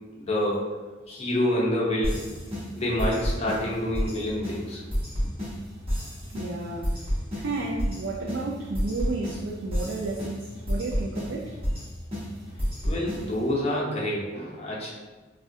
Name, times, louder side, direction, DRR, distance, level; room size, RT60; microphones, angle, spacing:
voice 1, 0.2-0.6 1.1-2.2 2.8-4.8 12.8-14.9, left 1 dB, 30° left, -4 dB, 0.7 m, -27 dB
sound 1, 2.0-13.5, equal, 30° right, 1.0 m, -31 dB
voice 2, 6.3-7.0 7.4-11.6, right 3 dB, 65° right, -2 dB, 0.4 m, -32 dB
3.5 x 2.1 x 2.6 m, 1.2 s
head